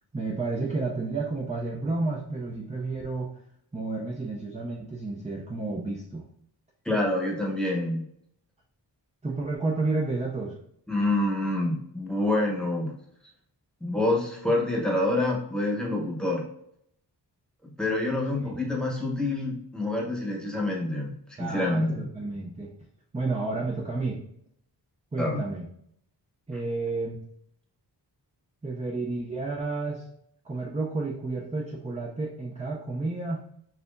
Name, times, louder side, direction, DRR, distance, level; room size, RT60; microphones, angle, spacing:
voice 1, 0.1-3.3 3.7-6.2 9.2-10.6 18.4-18.5 21.4-22.7 23.1-24.2 25.1-25.7 26.5-27.2 28.6-30.1 30.4-33.4, right 3 dB, 15° right, -2 dB, 0.6 m, -31 dB
voice 2, 6.8-8.0 10.9-12.9 13.8-16.4 17.8-21.1 21.4-22.0 25.2-25.4, left 2 dB, ahead, -1 dB, 1.0 m, -27 dB
4.2 x 2.8 x 2.6 m, 0.70 s
wide cardioid pair, 60°, 44 cm